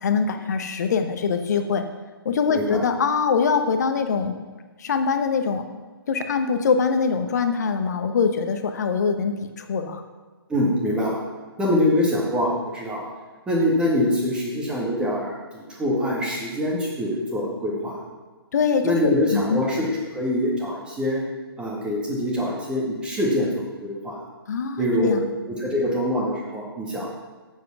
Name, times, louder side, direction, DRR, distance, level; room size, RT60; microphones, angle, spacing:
voice 1, 0.0-1.8 2.2-4.4 4.8-5.6 6.1-10.0 18.5-19.6 24.5-25.3, left 5 dB, 45° left, 7 dB, 1.0 m, -23 dB
voice 2, 2.5-2.8 10.5-11.2 11.6-13.1 13.5-18.0 18.8-19.9 20.1-21.2 21.6-24.2 24.8-25.1 25.5-27.1, left 1 dB, 5° right, -4 dB, 2.1 m, -24 dB
7.8 x 7.7 x 6.0 m, 1.4 s
figure-of-eight pair, 135°, 13 cm